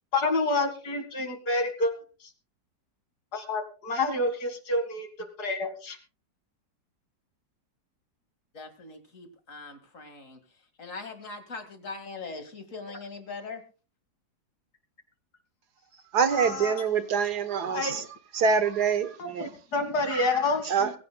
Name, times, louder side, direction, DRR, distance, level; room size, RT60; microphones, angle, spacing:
voice 1, 0.1-2.0 3.3-6.0 16.3-16.7 17.7-18.0 19.4-20.9, left 2 dB, 65° left, 2.6 m, -28 dB
voice 2, 8.5-10.4 10.8-13.6, left 4 dB, 50° left, 2.4 m, -41 dB
voice 3, 16.1-18.1 18.3-19.5 20.1-20.9, right 6 dB, 70° right, 1.7 m, -26 dB
21.5 x 16.0 x 2.3 m
omnidirectional pair, 1.8 m